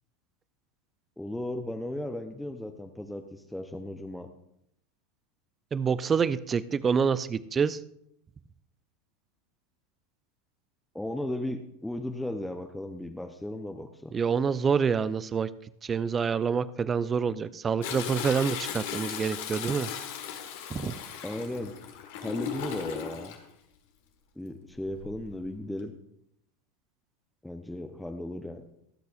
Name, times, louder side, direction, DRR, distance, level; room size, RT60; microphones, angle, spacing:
voice 1, 1.2-4.3 10.9-14.2 21.2-21.7 22.2-23.4 24.4-25.9 27.4-28.6, left 1 dB, 5° left, 5 dB, 0.8 m, -36 dB
voice 2, 5.7-7.8 14.1-15.5 15.8-19.9 20.7-21.0, right 6 dB, 25° right, 17 dB, 0.5 m, -27 dB
Toilet flush, 17.8-23.4 24.8-25.3 25.8-25.9, left 9 dB, 60° left, 1.6 m, -37 dB
23.5 x 8.0 x 2.5 m, 0.76 s
figure-of-eight pair, 85°, 0 cm